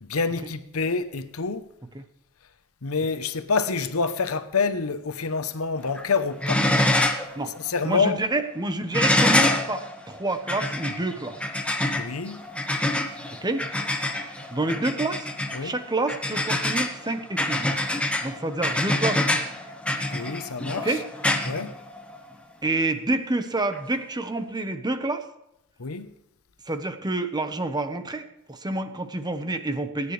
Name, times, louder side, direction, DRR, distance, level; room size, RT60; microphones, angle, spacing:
voice 1, 0.0-1.7 2.8-6.7 7.5-8.2 12.0-12.4 15.5-15.7 20.1-21.0 21.4-21.8 25.8-26.1, left 4 dB, 85° left, 0.9 m, -27 dB
sound 1, 5.8-6.1 6.4-7.3 7.7-7.8 8.9-22.3 23.7-23.8, left 1 dB, 5° left, 1.2 m, -26 dB
voice 2, 7.8-11.4 13.4-13.6 14.5-15.3 15.6-17.8 18.2-19.4 20.8-21.0 22.6-25.2 26.7-30.1, right 2 dB, 20° right, 1.0 m, -28 dB
21.0 x 9.9 x 3.3 m
head